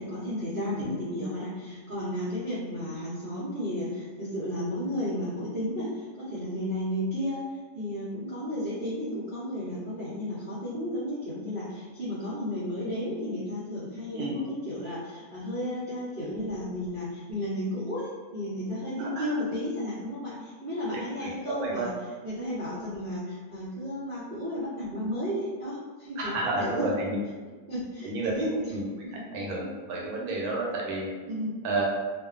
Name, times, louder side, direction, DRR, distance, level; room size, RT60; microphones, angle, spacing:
voice 1, 0.0-7.4 7.7-21.9 22.2-26.9 27.7-28.5 31.3-31.6, equal, 55° right, -12 dB, 0.6 m, -33 dB
voice 2, 20.9-21.9 26.2-27.2 28.0-28.8 29.1-31.1 31.6-31.8, right 2 dB, 80° right, -2 dB, 1.1 m, -31 dB
2.6 x 2.2 x 2.3 m, 1.4 s
omnidirectional pair, 1.6 m